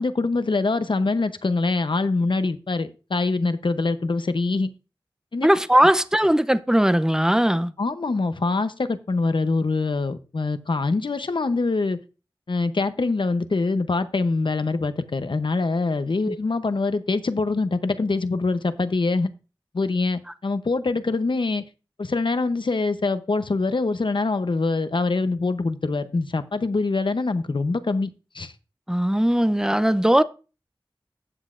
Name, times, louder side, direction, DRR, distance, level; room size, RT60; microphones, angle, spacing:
voice 1, 0.0-4.7 5.3-5.5 7.8-12.0 12.5-19.3 19.7-21.6 22.0-28.5, left 3 dB, 70° left, 0.8 m, -24 dB
voice 2, 5.4-7.7 16.3-16.4 28.9-30.2, equal, 5° right, 0.6 m, -19 dB
13.5 x 8.0 x 2.5 m
wide cardioid pair, 40°, 9 cm